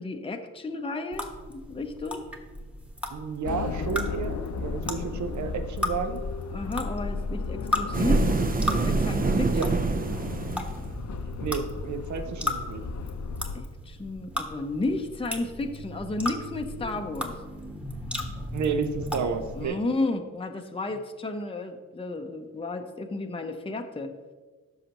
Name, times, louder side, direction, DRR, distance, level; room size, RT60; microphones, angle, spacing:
voice 1, 0.0-2.3 6.5-8.3 8.8-9.6 13.5-17.3 19.5-24.1, left 2 dB, 15° left, 5 dB, 0.7 m, -32 dB
sound 1, 1.1-19.7, left 1 dB, 5° right, 1.3 m, -36 dB
voice 2, 3.1-6.2 9.5-9.7 11.4-12.8 18.5-19.8, right 6 dB, 55° right, 9 dB, 0.8 m, -31 dB
sound 2, 3.4-13.6, left 4 dB, 55° left, 0.7 m, -35 dB
sound 3, 7.9-11.0, right 3 dB, 25° right, 0.6 m, -25 dB
13.5 x 5.7 x 2.9 m, 1.3 s
cardioid pair, 70°, 34 cm